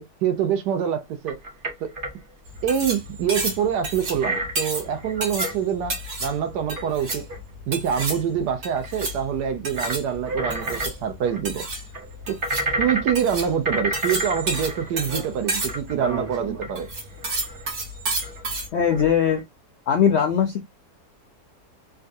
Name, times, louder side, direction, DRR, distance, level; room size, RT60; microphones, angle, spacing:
voice 1, 0.0-1.4 1.8-1.9 2.6-7.2 7.7-11.7 12.3-12.4 12.8-16.9, right 8 dB, 85° right, 1.3 m, -25 dB
sound 1, 1.3-2.1 2.7-3.0 4.2-5.6 6.5-7.4 7.9-8.0 8.8-9.1 9.8-10.0 10.2-11.4 11.9-13.3 13.7-17.8 18.2-18.6 18.9-19.4, right 1 dB, 40° right, 0.8 m, -31 dB
sound 2, 2.5-18.7, right 2 dB, 60° right, 1.8 m, -31 dB
voice 2, 18.7-19.4 19.9-20.7, left 8 dB, 75° left, 0.6 m, -20 dB
3.6 x 2.3 x 2.6 m
omnidirectional pair, 1.7 m